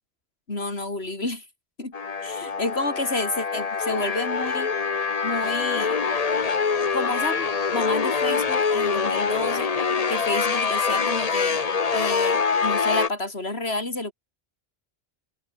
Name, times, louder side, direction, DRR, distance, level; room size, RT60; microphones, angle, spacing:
voice 1, 0.5-1.4 1.8-1.9 2.2-4.7 5.2-6.0 6.9-9.7 10.1-11.6 11.9-14.1, left 2 dB, 80° left, 4.5 m, -30 dB
sound 1, 1.9-13.1, left 5 dB, 40° left, 1.0 m, -24 dB
open air
omnidirectional pair, 1.0 m